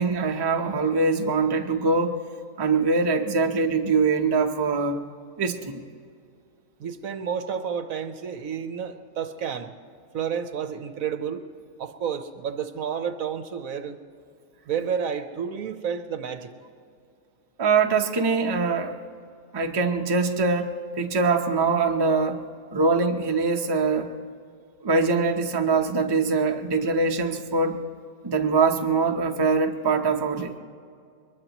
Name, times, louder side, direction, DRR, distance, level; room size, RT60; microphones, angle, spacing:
voice 1, 0.0-2.2 2.6-5.0 5.4-5.8 17.6-18.9 19.5-22.4 22.7-24.1 24.8-27.8 28.2-30.6, right 4 dB, 25° right, 3 dB, 0.6 m, -23 dB
voice 2, 6.8-9.7 10.1-11.4 11.8-14.0 14.7-16.5, right 7 dB, 70° right, 8 dB, 1.2 m, -30 dB
23.0 x 21.0 x 3.0 m, 2.3 s
omnidirectional pair, 1.6 m